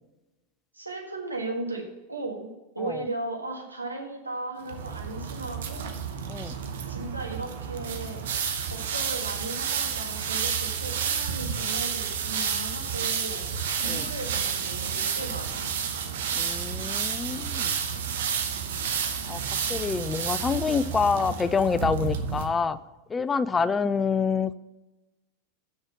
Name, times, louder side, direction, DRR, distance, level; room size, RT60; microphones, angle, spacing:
voice 1, 0.7-5.9 6.9-8.2 8.7-13.5 13.8-15.7, right 2 dB, 85° right, 1 dB, 1.5 m, -36 dB
sound 1, 4.6-22.4, right 7 dB, 60° right, 0.9 m, -30 dB
voice 2, 16.4-17.8 19.3-19.4 19.7-22.8 23.1-24.5, left 5 dB, 15° left, 14 dB, 0.3 m, -27 dB
6.4 x 6.2 x 6.0 m, 1.1 s
figure-of-eight pair, 90°, 0 cm